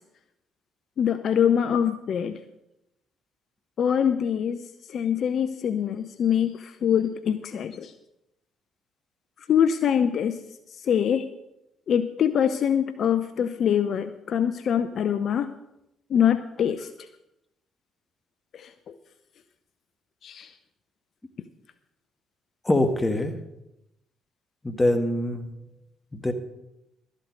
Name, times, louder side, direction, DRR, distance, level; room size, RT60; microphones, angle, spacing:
voice 1, 1.0-2.4 3.8-4.6 4.9-7.9 9.5-10.4 10.7-11.3 11.9-15.5 16.1-17.1 18.5-18.9 20.2-20.5, left 8 dB, 60° left, 11 dB, 0.5 m, -24 dB
voice 2, 22.6-23.3 24.6-25.5 26.1-26.3, left 1 dB, 20° left, 6 dB, 1.7 m, -23 dB
12.5 x 8.3 x 6.5 m, 0.88 s
hypercardioid pair, 45°, 0 cm